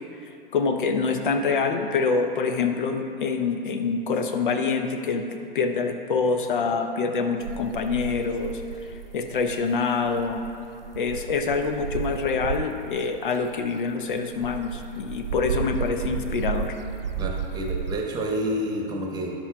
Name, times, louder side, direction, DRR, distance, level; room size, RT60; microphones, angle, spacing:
voice 1, 0.5-8.6 9.1-10.4 11.0-16.8, left 4 dB, 60° left, 6 dB, 0.8 m, -26 dB
sound 1, 7.4-12.9 13.4-18.0, right 7 dB, 75° right, 0.5 m, -33 dB
voice 2, 17.2-19.3, equal, 15° right, 0 dB, 1.0 m, -29 dB
15.5 x 6.0 x 2.3 m, 2.6 s
figure-of-eight pair, 110°, 29 cm